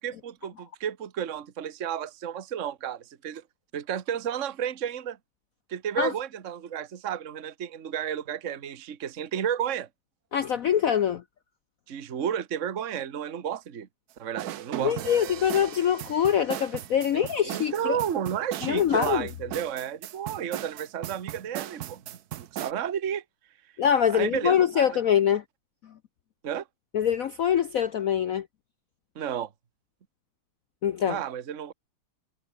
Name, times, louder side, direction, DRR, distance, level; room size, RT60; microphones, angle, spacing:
voice 1, 0.0-3.4 3.7-5.2 5.7-9.9 11.9-13.9 14.2-14.9 17.1-22.0 22.4-23.2 24.1-25.0 26.4-26.6 29.1-29.5 31.1-31.7, right 9 dB, 40° right, 1.5 m, -32 dB
voice 2, 10.3-11.2 14.8-18.0 18.6-19.3 23.8-25.4 26.9-28.5 30.8-31.2, left 9 dB, 70° left, 0.8 m, -24 dB
sound 1, 14.4-22.7, right 13 dB, 70° right, 0.9 m, -37 dB
omnidirectional pair, 2.3 m